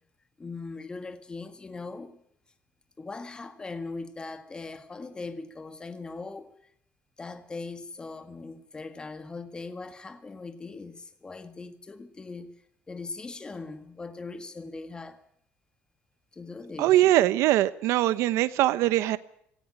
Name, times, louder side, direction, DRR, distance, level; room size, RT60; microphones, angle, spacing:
voice 1, 0.4-2.2 3.0-6.5 7.2-12.5 12.9-15.2 16.3-17.0, left 3 dB, 20° left, 1.8 m, -40 dB
voice 2, 16.8-19.2, right 14 dB, 80° right, 1.0 m, -22 dB
17.5 x 16.0 x 9.8 m
cardioid pair, 145°, 5 cm